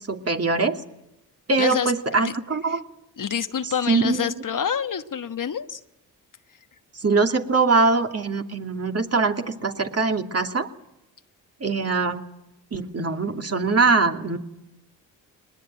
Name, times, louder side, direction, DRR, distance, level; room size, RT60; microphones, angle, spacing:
voice 1, 0.1-0.8 1.5-2.8 3.9-4.3 6.9-10.7 11.6-12.2 12.7-14.4, right 4 dB, 35° right, 4 dB, 2.6 m, -22 dB
voice 2, 1.6-1.9 2.2-2.4 2.7-2.8 3.2-5.8, left 8 dB, 50° left, 10 dB, 1.2 m, -27 dB
21.5 x 20.0 x 9.1 m, 0.90 s
supercardioid pair, 45°, 42 cm